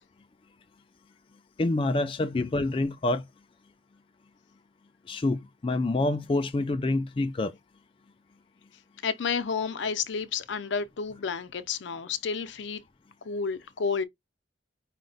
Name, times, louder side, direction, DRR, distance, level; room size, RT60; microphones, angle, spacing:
voice 1, 1.6-3.2 5.1-7.5, left 2 dB, 30° left, 0.3 m, -27 dB
voice 2, 9.0-12.8 13.2-14.0, left 5 dB, 80° left, 0.5 m, -31 dB
5.0 x 2.2 x 3.8 m
head